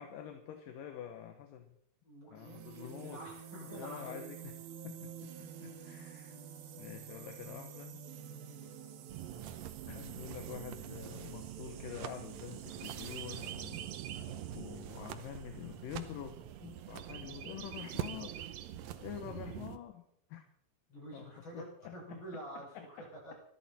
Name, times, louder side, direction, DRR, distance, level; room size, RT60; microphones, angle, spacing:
voice 1, 0.0-1.7 2.3-3.3 3.7-4.6 4.8-6.4 6.8-8.0 9.9-13.8 14.5-18.4 19.0-20.0 20.3-20.4 21.1-21.3 21.5-22.4 22.7-22.9, left 10 dB, 75° left, 6 dB, 2.7 m, -47 dB
voice 2, 2.0-4.3 8.3-8.7 18.9-19.1 20.9-23.4, right 1 dB, 35° left, -2 dB, 7.0 m, -48 dB
sound 1, 2.4-15.8, right 9 dB, 90° right, 3.1 m, -49 dB
sound 2, 9.1-19.8, right 10 dB, 70° right, 1.7 m, -44 dB
24.5 x 11.0 x 4.3 m, 0.65 s
omnidirectional pair, 4.1 m